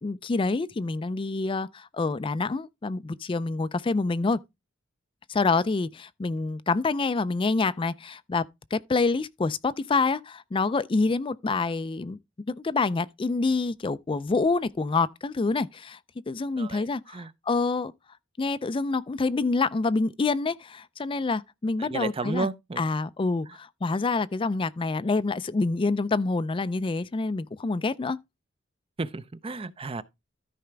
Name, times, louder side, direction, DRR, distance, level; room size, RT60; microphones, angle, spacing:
voice 1, 0.0-4.4 5.3-8.4 8.7-12.2 12.5-16.0 16.3-17.9 18.4-22.5 22.8-28.2, left 3 dB, 25° left, 0.4 m, -27 dB
voice 2, 16.6-17.3 21.8-22.8 29.0-30.0, right 3 dB, 30° right, 0.5 m, -33 dB
13.5 x 4.9 x 3.3 m
head